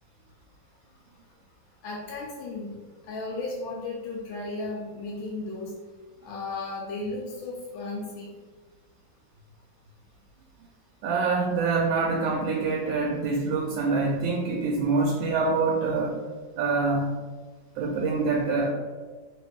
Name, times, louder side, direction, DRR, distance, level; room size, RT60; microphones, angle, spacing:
voice 1, 1.8-2.7 3.1-5.7 6.2-8.3, left 3 dB, 85° left, -3 dB, 1.4 m, -34 dB
voice 2, 11.0-16.2 16.6-17.1 17.8-18.7, right 4 dB, 90° right, -2 dB, 1.3 m, -25 dB
3.1 x 2.9 x 3.4 m, 1.3 s
omnidirectional pair, 2.1 m